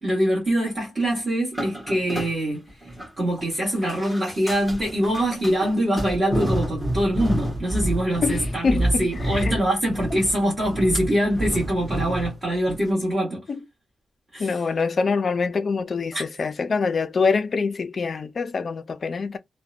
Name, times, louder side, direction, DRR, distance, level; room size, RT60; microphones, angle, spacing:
voice 1, 0.0-2.6 3.2-13.4 14.3-14.6 16.1-16.2, right 1 dB, 25° right, 1.3 m, -24 dB
sound 1, 1.5-3.1 3.4-12.4 12.7-12.9, right 1 dB, 5° right, 1.0 m, -29 dB
voice 2, 8.2-9.6 13.5-13.6 14.4-19.4, left 4 dB, 40° left, 0.4 m, -25 dB
2.7 x 2.1 x 2.3 m
wide cardioid pair, 165°, 0 cm